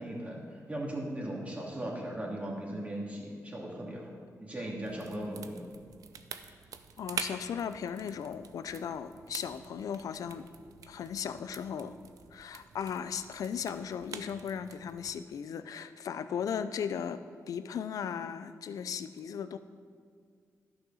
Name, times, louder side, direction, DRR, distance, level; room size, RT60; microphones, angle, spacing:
voice 1, 0.0-4.1 4.4-5.7, right 1 dB, 25° right, -2 dB, 2.5 m, -38 dB
sound 1, 4.8-15.2, right 7 dB, 80° right, 0.5 m, -46 dB
voice 2, 7.0-10.5 10.9-12.0 12.3-19.6, left 7 dB, 80° left, 12 dB, 0.5 m, -37 dB
11.5 x 6.3 x 5.6 m, 2.1 s
cardioid pair, 75°, 6 cm